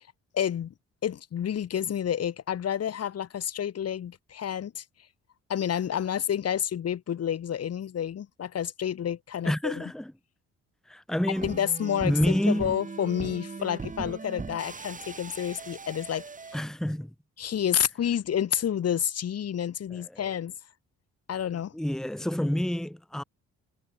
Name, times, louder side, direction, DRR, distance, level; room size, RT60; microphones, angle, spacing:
voice 1, 0.3-0.7 1.0-4.8 5.5-9.8 11.4-16.2 17.4-20.5 21.3-21.7, left 9 dB, 55° left, 1.6 m, -29 dB
voice 2, 9.4-10.1 10.9-11.5 12.0-12.8 16.5-17.1 19.9-20.2 21.7-23.2, equal, ahead, 1.4 m, -28 dB
sound 1, 11.3-16.6, right 4 dB, 25° right, 2.2 m, -39 dB
cardioid pair, 90°, 30 cm